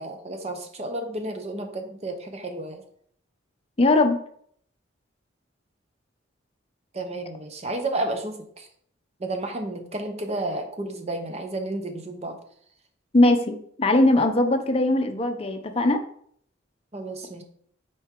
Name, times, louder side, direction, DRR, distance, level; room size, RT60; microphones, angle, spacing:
voice 1, 0.0-2.8 6.9-8.7 9.2-12.4 16.9-17.4, right 2 dB, 35° right, 6 dB, 0.8 m, -32 dB
voice 2, 3.8-4.2 13.1-16.0, left 2 dB, 30° left, 6 dB, 0.6 m, -20 dB
6.1 x 4.4 x 3.7 m, 0.64 s
head